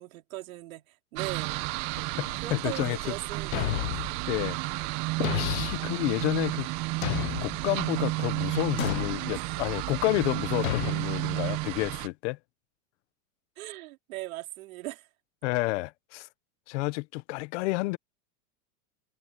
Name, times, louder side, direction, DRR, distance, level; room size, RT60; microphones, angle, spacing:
voice 1, 0.0-1.6 2.4-4.0 9.3-9.5 13.6-15.1, right 17 dB, 75° right, 3.6 m, -39 dB
sound 1, 1.2-12.1, right 22 dB, 45° right, 1.2 m, -32 dB
voice 2, 2.2-3.0 4.3-4.6 5.2-6.7 7.4-12.4 15.4-16.3 16.7-18.0, left 22 dB, 55° left, 1.4 m, -30 dB
Thump thud, 3.5-4.1 5.2-5.8 7.0-7.6 8.8-9.2 10.6-11.0, left 17 dB, 80° left, 0.8 m, -30 dB
supercardioid pair, 155°, 41 cm